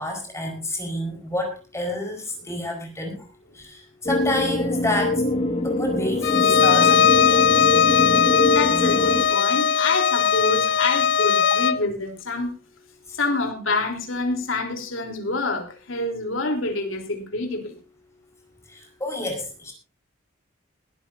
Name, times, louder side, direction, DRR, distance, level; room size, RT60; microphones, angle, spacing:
voice 1, 0.0-3.3 3.5-7.5 13.1-13.2 18.7-19.7, left 1 dB, 15° left, 2 dB, 4.6 m, -29 dB
sound 1, 4.1-9.3, left 2 dB, 30° left, 1.9 m, -23 dB
Bowed string instrument, 6.2-11.8, left 7 dB, 60° left, 0.7 m, -19 dB
voice 2, 8.4-12.5 13.2-17.8, left 2 dB, 80° left, 3 dB, 3.5 m, -27 dB
21.5 x 12.0 x 2.7 m, 0.31 s
head